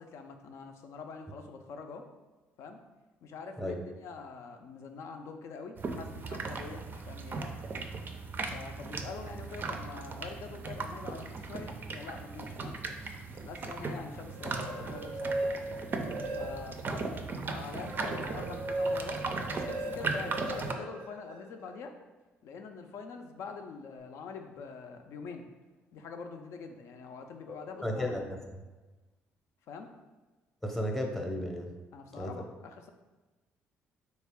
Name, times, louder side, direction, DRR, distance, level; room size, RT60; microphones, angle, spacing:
voice 1, 0.0-2.1 2.6-2.8 3.2-7.5 8.4-12.8 13.4-15.4 16.2-17.1 17.4-22.0 22.4-25.5 25.9-28.1 29.7-29.9 31.9-32.9, left 5 dB, 65° left, 5 dB, 0.4 m, -45 dB
sound 1, 5.8-20.7, right 4 dB, 40° right, 0.4 m, -38 dB
sound 2, 14.2-16.9 17.4-21.7, right 1 dB, 90° right, 0.5 m, -37 dB
voice 2, 27.8-28.2 30.6-31.7 32.2-32.3, equal, 5° left, 1 dB, 0.6 m, -33 dB
3.2 x 2.4 x 3.5 m, 1.2 s
supercardioid pair, 65°, 5 cm